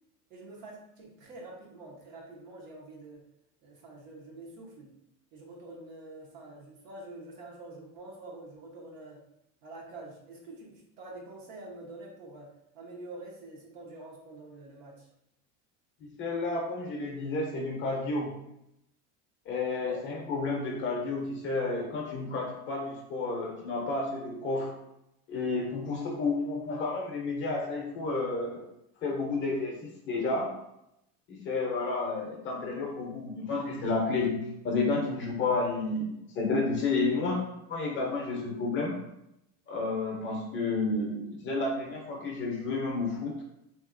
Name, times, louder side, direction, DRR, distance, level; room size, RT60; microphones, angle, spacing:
voice 1, 0.3-3.2 3.6-4.9 5.3-9.2 9.6-15.1 19.8-20.0, right 2 dB, 75° right, -2 dB, 1.0 m, -46 dB
voice 2, 16.0-18.4 19.5-24.7 25.3-28.7 29.0-30.6 31.3-37.4 37.7-39.0 39.7-43.4, left 3 dB, 30° left, 0 dB, 0.5 m, -31 dB
2.8 x 2.7 x 2.5 m, 0.84 s
cardioid pair, 150°, 38 cm